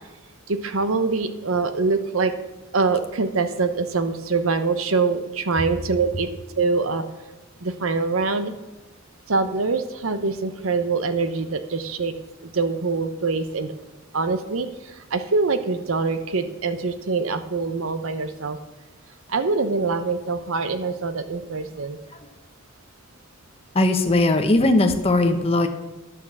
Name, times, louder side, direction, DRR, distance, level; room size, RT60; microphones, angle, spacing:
voice 1, 0.5-2.3 2.7-6.3 6.6-7.0 7.6-8.5 9.3-12.1 12.5-13.7 14.1-14.7 15.1-18.6 19.3-22.0, right 4 dB, 90° right, 10 dB, 0.9 m, -24 dB
voice 2, 23.7-25.7, left 2 dB, 30° left, 5 dB, 1.0 m, -19 dB
11.0 x 6.6 x 7.3 m, 1.1 s
head